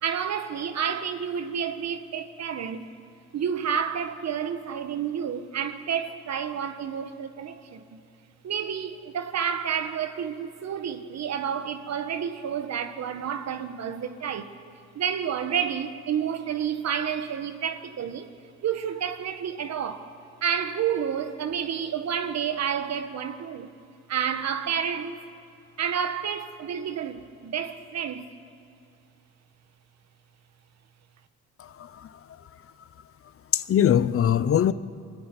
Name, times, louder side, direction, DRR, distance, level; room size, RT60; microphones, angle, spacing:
voice 1, 0.0-2.9 3.3-8.0 8.4-14.5 14.9-18.3 18.6-20.1 20.4-23.7 24.1-25.2 25.8-28.3, right 8 dB, 60° right, 1.4 m, -30 dB
voice 2, 31.6-32.1 33.5-34.7, left 9 dB, 45° left, 0.7 m, -22 dB
22.0 x 14.0 x 9.7 m
cardioid pair, 90°, 30 cm